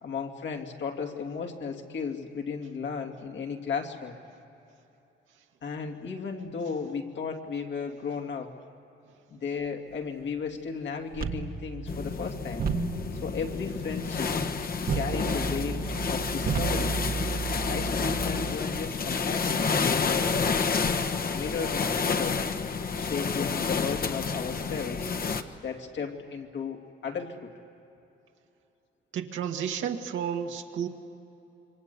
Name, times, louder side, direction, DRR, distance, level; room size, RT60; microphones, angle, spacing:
voice 1, 0.0-4.2 5.6-8.6 9.3-12.7 13.2-14.5 14.9-17.0 17.7-20.5 21.3-22.5 22.9-25.1 25.6-27.5, left 5 dB, 65° left, 2 dB, 2.9 m, -35 dB
sound 1, 11.1-18.5, right 5 dB, 45° right, 1.5 m, -33 dB
sound 2, 11.9-25.4, left 5 dB, 45° left, 1.4 m, -29 dB
voice 2, 29.1-30.9, right 8 dB, 75° right, 3 dB, 1.9 m, -31 dB
27.5 x 24.0 x 8.3 m, 2.9 s
cardioid pair, 90°, 20 cm